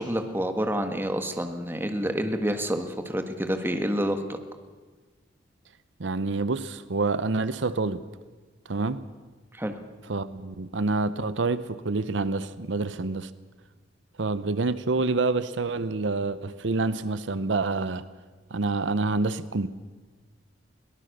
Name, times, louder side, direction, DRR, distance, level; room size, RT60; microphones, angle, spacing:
voice 1, 0.0-4.4 9.5-9.7, equal, 10° right, 1.5 m, -28 dB
voice 2, 6.0-8.0 8.7-9.0 10.1-13.3 14.2-18.0 18.5-19.7, right 3 dB, 80° right, 0.8 m, -27 dB
22.0 x 18.0 x 6.7 m
head